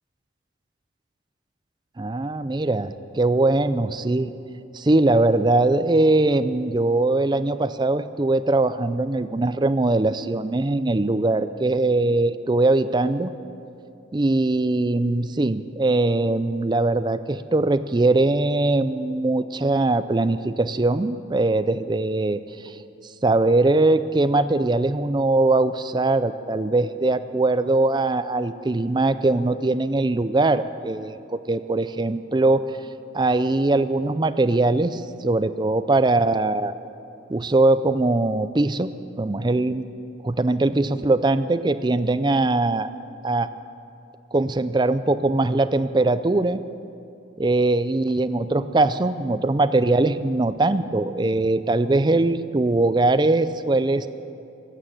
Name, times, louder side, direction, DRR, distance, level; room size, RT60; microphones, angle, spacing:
voice 1, 2.0-4.3 4.7-13.3 14.1-22.8 23.2-32.6 33.1-36.8 37.3-38.9 39.2-39.9 40.2-42.9 43.2-43.5 44.3-46.6 47.4-54.1, right 2 dB, 20° right, 13 dB, 0.4 m, -21 dB
15.5 x 9.1 x 9.8 m, 2.7 s
head